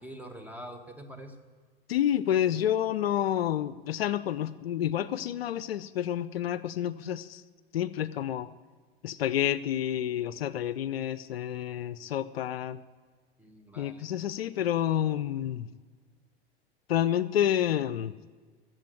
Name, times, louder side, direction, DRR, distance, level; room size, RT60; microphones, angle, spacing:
voice 1, 0.0-1.4 13.4-14.1, equal, 5° right, 5 dB, 1.7 m, -44 dB
voice 2, 1.9-7.4 7.7-8.5 9.0-12.8 13.8-15.7 16.9-18.1, left 11 dB, 75° left, 16 dB, 0.6 m, -29 dB
14.5 x 7.7 x 9.1 m, 1.5 s
figure-of-eight pair, 80°, 30 cm